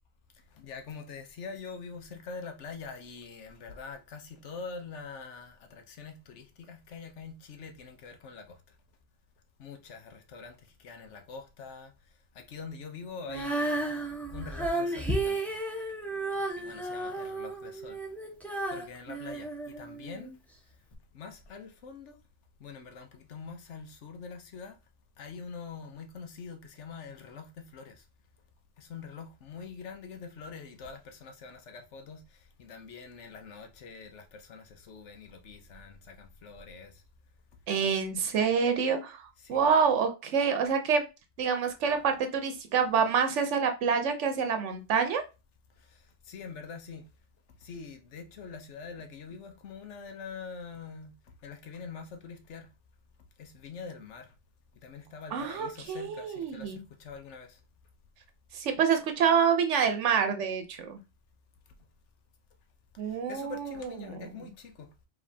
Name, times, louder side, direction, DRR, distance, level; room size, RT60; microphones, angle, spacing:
voice 1, 0.5-8.6 9.6-11.9 12.3-13.9 14.3-15.5 16.6-18.0 18.7-20.3 21.1-22.2 22.6-24.8 25.2-28.0 28.8-37.0 39.4-39.7 45.9-47.1 47.6-51.1 51.4-52.7 53.4-54.3 54.8-57.6 63.1-64.9, left 5 dB, 80° left, 1.1 m, -44 dB
Female singing, 13.2-20.3 20.9-21.0, right 2 dB, ahead, 0.8 m, -33 dB
voice 2, 37.7-41.0 41.4-45.2 55.3-56.8 58.5-61.0 63.0-64.2, right 6 dB, 85° right, 1.0 m, -27 dB
5.1 x 3.1 x 2.7 m
omnidirectional pair, 1.2 m